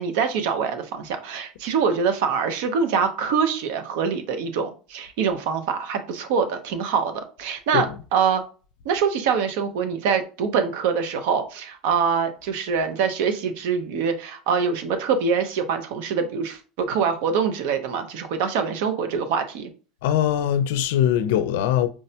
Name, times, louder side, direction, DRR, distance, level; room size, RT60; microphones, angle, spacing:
voice 1, 0.0-7.9 8.1-8.4 8.8-19.7, right 6 dB, 75° right, 0.6 m, -24 dB
voice 2, 20.0-21.9, left 10 dB, 80° left, 0.4 m, -21 dB
4.7 x 2.1 x 2.7 m
supercardioid pair, 140°, 0 cm